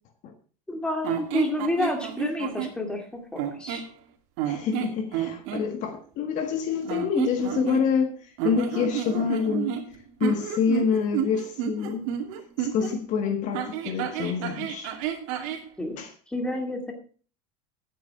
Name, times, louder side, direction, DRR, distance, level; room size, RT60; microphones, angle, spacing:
voice 1, 0.7-3.8 15.8-16.0 16.3-16.9, left 1 dB, 5° left, 2.3 m, -29 dB
sound 1, 1.0-2.8 3.3-3.9 4.4-5.6 6.8-8.1 8.4-12.9 13.5-15.7, right 10 dB, 65° right, 2.5 m, -30 dB
voice 2, 4.4-9.7 10.2-12.1 12.6-14.9 16.0-16.1, left 6 dB, 45° left, 1.5 m, -27 dB
11.0 x 9.3 x 4.9 m
supercardioid pair, 155°, 18 cm